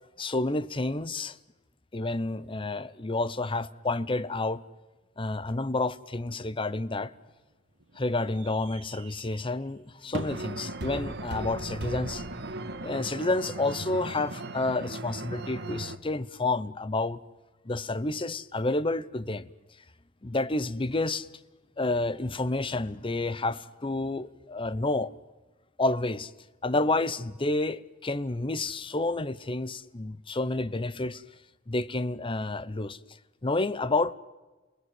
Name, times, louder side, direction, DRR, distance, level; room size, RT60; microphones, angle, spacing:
voice 1, 0.2-1.4 1.9-4.6 5.2-7.1 8.0-12.2 12.8-17.2 17.7-19.5 20.2-21.3 21.8-25.1 25.8-26.3 26.6-31.2 31.7-33.0 33.4-34.1, left 2 dB, 25° left, 0.8 m, -29 dB
sound 1, 6.8-12.8, right 2 dB, 80° right, 1.5 m, -45 dB
sound 2, 10.3-16.0, right 2 dB, 60° right, 1.7 m, -37 dB
29.5 x 19.5 x 9.5 m
head